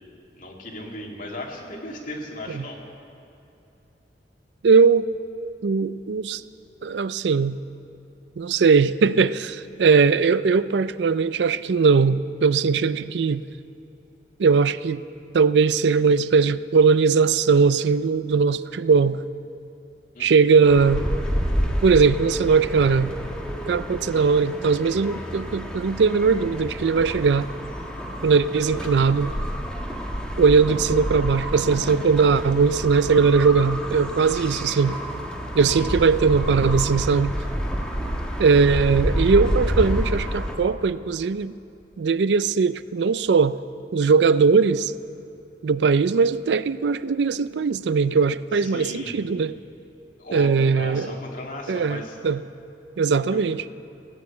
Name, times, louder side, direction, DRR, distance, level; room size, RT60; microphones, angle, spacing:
voice 1, 0.4-2.8 20.1-20.5 35.7-35.9 48.5-49.2 50.2-52.2 53.3-53.4, left 1 dB, 50° left, 0 dB, 2.3 m, -36 dB
voice 2, 4.6-5.1 5.6-6.4 6.8-7.6 8.4-13.4 14.4-15.0 15.3-19.2 20.2-21.1 21.8-23.1 23.7-27.5 28.2-29.3 30.4-35.0 35.5-37.3 38.4-41.5 42.0-43.6 43.9-44.9 45.6-49.6 50.3-51.2 51.7-52.4 53.0-53.6, right 5 dB, 75° right, 15 dB, 0.4 m, -20 dB
sound 1, 20.6-40.5, equal, 5° left, 1.4 m, -29 dB
17.0 x 9.1 x 8.5 m, 2.8 s
head